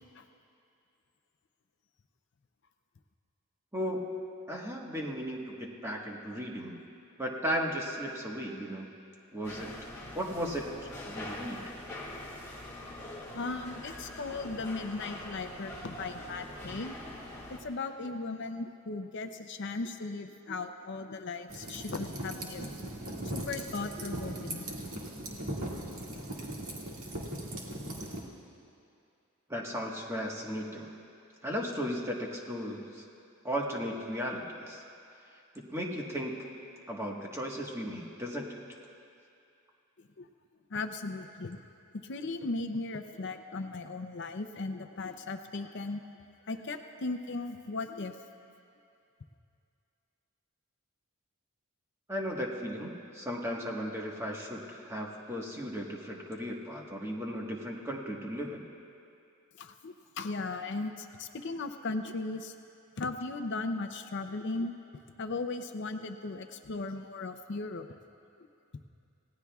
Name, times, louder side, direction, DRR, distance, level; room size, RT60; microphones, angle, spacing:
voice 1, 3.7-4.1 4.5-6.8 7.2-8.9 9.3-9.8 10.1-11.7 29.5-30.9 31.4-33.0 33.4-34.8 35.3-36.4 36.9-38.6 52.1-58.7, equal, 10° right, -2 dB, 1.4 m, -36 dB
sound 1, 9.4-17.6, left 1 dB, 10° left, 1.8 m, -43 dB
voice 2, 13.3-16.9 17.5-22.7 23.3-24.7 40.2-40.3 40.7-41.6 42.1-46.0 46.5-48.1 59.6-62.5 63.0-64.8 65.2-67.9, left 3 dB, 55° left, 7 dB, 0.5 m, -37 dB
sound 2, 21.5-28.2, right 1 dB, 70° right, 2.1 m, -39 dB
29.0 x 17.0 x 2.4 m, 2.6 s
head